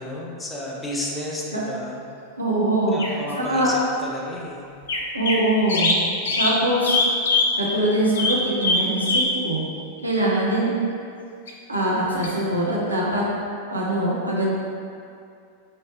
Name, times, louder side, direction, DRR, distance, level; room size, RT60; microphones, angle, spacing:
voice 1, 0.0-2.0 2.9-4.8, left 1 dB, 10° left, -4 dB, 0.6 m, -32 dB
voice 2, 2.4-3.0 3.4-3.7 5.1-5.9 6.4-7.0 7.6-9.6 10.0-10.7 11.7-13.3 13.7-14.5, right 1 dB, 80° right, -5 dB, 0.7 m, -22 dB
sound 1, 3.0-3.1 4.9-5.4 5.7-7.6 8.2-9.4 11.5-11.6 12.2-12.3, left 2 dB, 65° left, 0.5 m, -22 dB
3.2 x 2.9 x 4.3 m, 2.4 s
figure-of-eight pair, 90°, 0 cm